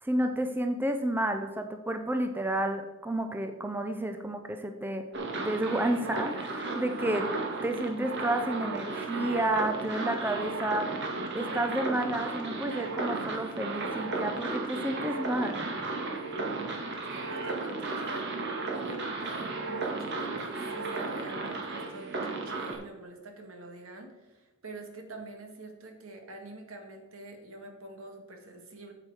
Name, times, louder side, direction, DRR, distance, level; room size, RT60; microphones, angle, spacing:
voice 1, 0.0-5.0 5.4-7.3 7.6-10.9 11.3-15.7, right 1 dB, 10° right, 6 dB, 0.6 m, -31 dB
sound 1, 5.1-22.7, right 3 dB, 55° right, 1.9 m, -34 dB
voice 2, 17.1-18.3 18.6-28.9, right 2 dB, 75° right, 3 dB, 1.9 m, -46 dB
8.6 x 8.0 x 4.9 m, 1.0 s
head